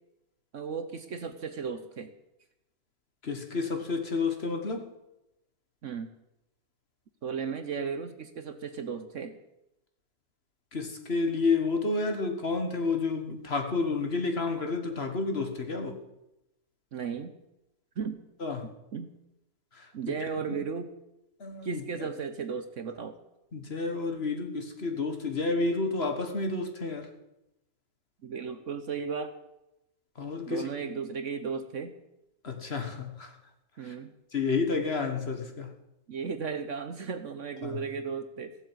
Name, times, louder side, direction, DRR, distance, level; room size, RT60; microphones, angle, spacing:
voice 1, 0.5-2.1 5.8-6.1 7.2-9.4 16.9-17.3 18.0-18.2 18.9-19.1 19.9-20.9 21.6-23.2 28.2-29.3 30.5-32.0 33.8-34.1 36.1-38.6, right 6 dB, 55° right, 1.1 m, -35 dB
voice 2, 3.2-4.9 10.7-16.0 18.4-18.7 19.7-19.9 20.4-20.6 21.4-22.1 23.5-27.1 30.2-30.7 32.4-33.4 33.8-33.9 34.3-35.7 37.6-37.8, left 4 dB, 40° left, 1.6 m, -30 dB
16.0 x 7.8 x 8.2 m
omnidirectional pair, 1.7 m